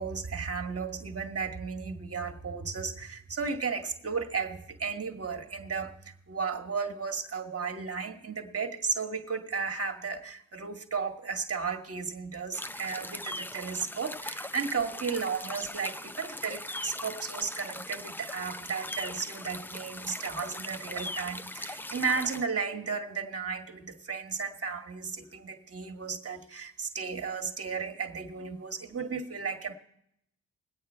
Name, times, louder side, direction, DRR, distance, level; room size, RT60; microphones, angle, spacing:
voice 1, 0.0-29.7, right 5 dB, 40° right, 6 dB, 1.7 m, -34 dB
sound 1, 12.5-22.4, left 1 dB, 5° left, 0.4 m, -40 dB
20.5 x 8.8 x 4.5 m, 0.75 s
hypercardioid pair, 40°, 36 cm